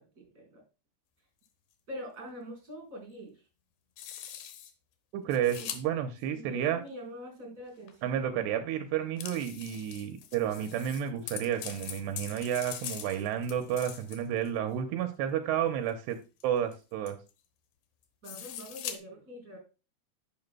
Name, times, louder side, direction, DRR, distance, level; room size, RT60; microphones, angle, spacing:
voice 1, 0.2-0.6 1.9-3.3 5.6-5.7 6.3-8.3 18.2-19.6, equal, 20° right, 2 dB, 4.5 m, -44 dB
sound 1, 1.5-1.6 4.0-4.7 5.3-5.8 7.9-8.0 9.2-14.5 15.9-16.0 16.4-16.5 16.7-16.8 17.1-17.3 18.2-19.0, left 9 dB, 75° left, 1.9 m, -42 dB
voice 2, 5.1-6.8 8.0-16.2 16.4-17.2, right 9 dB, 85° right, 6 dB, 2.8 m, -31 dB
10.5 x 9.4 x 2.2 m, 0.31 s
omnidirectional pair, 4.9 m